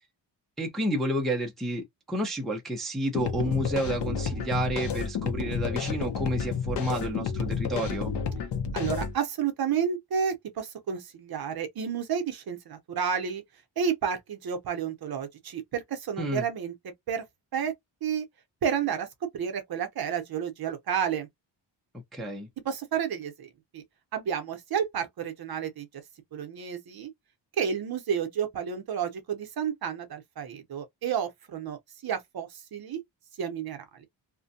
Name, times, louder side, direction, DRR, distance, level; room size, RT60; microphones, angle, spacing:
voice 1, 0.6-8.1 16.2-16.5 22.1-22.5, right 1 dB, ahead, 0.5 m, -30 dB
sound 1, 3.1-9.1, left 6 dB, 65° left, 0.7 m, -31 dB
voice 2, 8.7-13.4 13.8-16.7 17.1-17.2 17.5-17.7 18.0-18.2 18.6-19.1 19.3-21.3 22.6-23.5 23.7-23.8 24.1-25.9 26.3-27.1 27.6-33.0 33.4-34.1, right 7 dB, 55° right, 0.7 m, -31 dB
2.5 x 2.1 x 2.6 m
wide cardioid pair, 160°, 45 cm